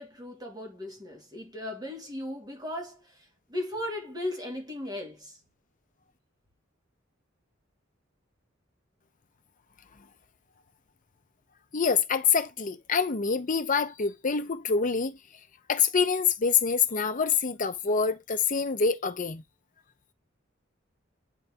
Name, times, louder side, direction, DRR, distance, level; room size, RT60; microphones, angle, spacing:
voice 1, 0.0-5.4, left 1 dB, 20° right, 2.0 m, -37 dB
voice 2, 11.7-15.2 15.7-19.4, left 6 dB, 40° left, 0.8 m, -26 dB
9.1 x 4.1 x 3.5 m
head